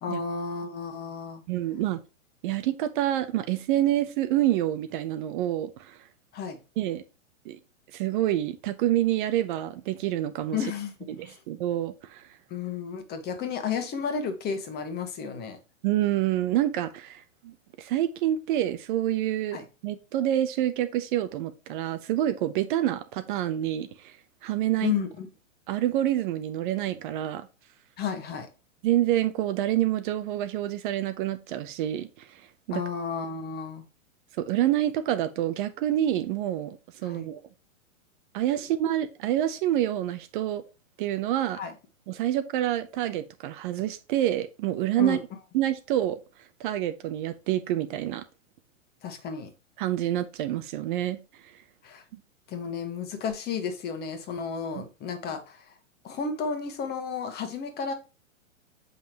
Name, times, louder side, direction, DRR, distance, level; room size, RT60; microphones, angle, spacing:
voice 1, 0.0-1.4 6.3-6.6 10.5-10.9 11.2-11.4 12.5-15.6 19.5-19.6 24.8-25.3 28.0-28.5 32.7-33.8 37.0-37.3 41.5-41.7 45.0-45.2 49.0-49.5 51.8-52.0 52.5-55.7 56.0-57.9, left 6 dB, 25° left, 1.4 m, -32 dB
voice 2, 1.5-2.0 2.4-6.1 6.8-7.0 7.4-7.6 7.9-10.6 11.1-12.4 15.8-19.6 19.8-24.2 24.4-24.9 25.7-27.5 28.8-32.8 34.4-37.4 38.3-40.6 41.0-41.6 42.1-45.2 45.5-46.2 46.6-48.2 49.8-51.6 52.1-52.2 54.7-54.9, right 12 dB, 40° right, 0.7 m, -27 dB
7.4 x 5.5 x 2.9 m
hypercardioid pair, 125°, 39 cm